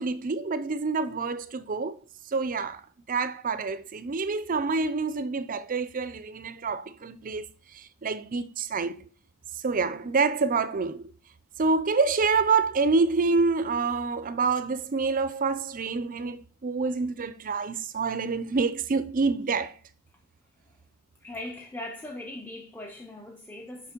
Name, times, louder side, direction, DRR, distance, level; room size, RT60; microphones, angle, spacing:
voice 1, 0.0-2.0 2.3-2.8 3.1-7.5 7.7-9.1 9.6-11.1 11.6-19.7, right 4 dB, 40° right, 0.5 m, -27 dB
voice 2, 21.2-23.9, left 1 dB, 10° left, 0.6 m, -40 dB
5.9 x 5.8 x 4.4 m
head